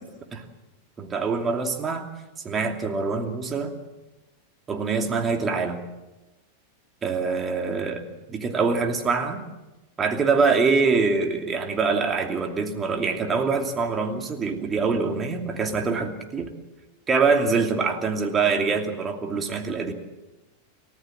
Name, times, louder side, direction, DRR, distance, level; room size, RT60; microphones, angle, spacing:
voice 1, 1.0-2.1 2.4-3.7 4.7-5.8 7.0-9.4 10.0-16.5 17.1-19.9, right 4 dB, 20° right, 4 dB, 2.7 m, -24 dB
29.0 x 14.5 x 7.6 m, 1.1 s
figure-of-eight pair, 90°, 0 cm